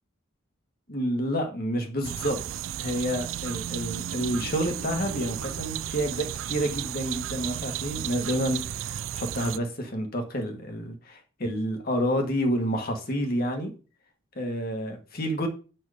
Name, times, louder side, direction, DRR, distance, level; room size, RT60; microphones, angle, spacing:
voice 1, 0.9-2.4 2.8-13.7 14.3-15.5, equal, 45° left, 1.5 m, -29 dB
sound 1, 2.0-9.6, right 11 dB, 70° right, 0.3 m, -34 dB
9.1 x 4.6 x 5.0 m
head